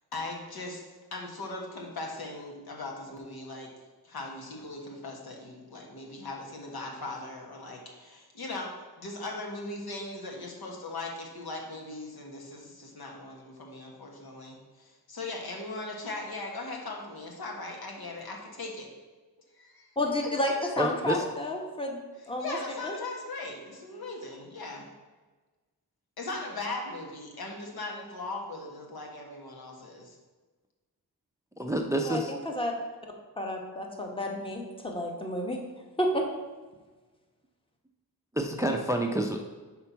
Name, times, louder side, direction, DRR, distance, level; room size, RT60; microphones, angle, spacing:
voice 1, 0.1-0.8 1.1-3.7 4.0-18.9 19.6-19.9 20.2-20.3 22.4-24.9 26.2-30.2, left 2 dB, 75° left, 0 dB, 1.4 m, -39 dB
voice 2, 20.0-22.0 22.3-22.6 22.8-22.9 32.0-32.7 33.4-35.6 36.0-36.2, left 1 dB, 15° left, 2 dB, 1.0 m, -31 dB
voice 3, 20.8-21.2 31.6-32.3 38.4-39.4, right 1 dB, 10° right, 4 dB, 0.4 m, -28 dB
5.8 x 4.4 x 5.6 m, 1.3 s
wide cardioid pair, 115°, 37 cm